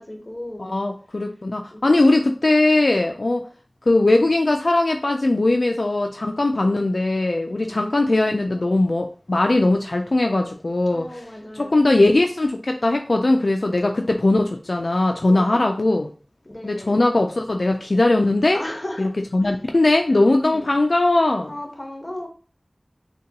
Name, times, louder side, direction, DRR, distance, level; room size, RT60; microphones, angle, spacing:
voice 1, 0.0-0.7 1.7-2.0 7.6-7.8 10.9-11.8 15.3-15.6 16.4-17.0 18.5-19.1 19.4-19.6 20.4-20.7 21.5-22.3, left 1 dB, 35° left, 1.1 m, -35 dB
voice 2, 0.6-3.5 3.9-11.3 11.5-16.1 16.6-18.6 19.0-21.5, left 2 dB, 70° left, 0.4 m, -20 dB
6.4 x 2.3 x 2.9 m
wide cardioid pair, 50°, 0 cm